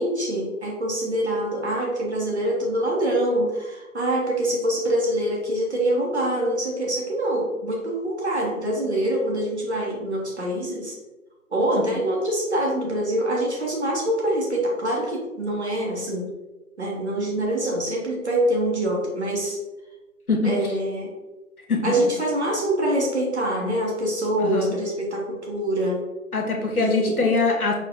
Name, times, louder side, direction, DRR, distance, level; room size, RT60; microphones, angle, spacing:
voice 1, 0.0-11.0 11.5-16.2 16.8-19.6 20.4-21.1 21.8-26.0 26.7-27.2, right 1 dB, 50° right, -2 dB, 0.9 m, -25 dB
voice 2, 24.4-24.7 26.3-27.7, left 3 dB, 80° left, 1 dB, 1.0 m, -23 dB
5.0 x 2.5 x 2.5 m, 1.1 s
figure-of-eight pair, 155°, 43 cm